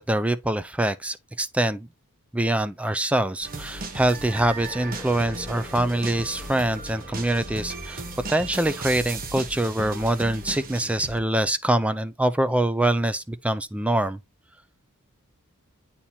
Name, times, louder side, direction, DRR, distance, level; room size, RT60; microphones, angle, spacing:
voice 1, 0.0-1.9 2.3-8.0 8.3-14.2, right 1 dB, 5° right, 0.3 m, -24 dB
sound 1, 3.4-11.2, right 3 dB, 40° right, 1.0 m, -36 dB
sound 2, 4.6-10.7, left 1 dB, 10° left, 0.7 m, -49 dB
8.6 x 2.9 x 4.1 m
head